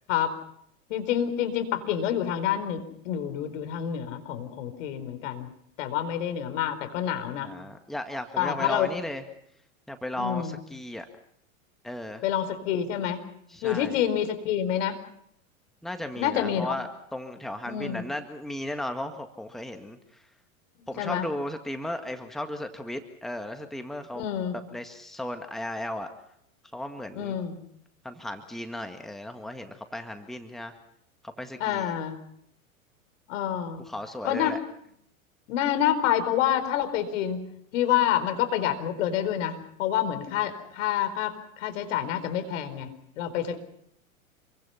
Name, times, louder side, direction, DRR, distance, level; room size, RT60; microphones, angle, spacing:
voice 1, 0.9-5.5 5.8-7.5 8.4-8.9 10.2-10.6 12.2-13.2 13.6-15.0 16.2-16.8 17.7-18.0 21.0-21.3 24.1-24.6 27.1-27.6 31.6-32.2 33.3-33.8 34.2-34.6 35.5-37.4 37.7-42.9 43.2-43.6, left 10 dB, 60° left, 9 dB, 4.4 m, -27 dB
voice 2, 7.4-9.2 9.9-11.1 11.8-12.2 13.5-14.0 15.8-20.2 20.9-24.2 24.7-26.1 26.7-27.4 28.0-30.7 31.4-32.0 33.8-34.6, left 1 dB, ahead, 6 dB, 1.8 m, -35 dB
27.5 x 23.5 x 5.7 m, 0.73 s
hypercardioid pair, 100°, 42 cm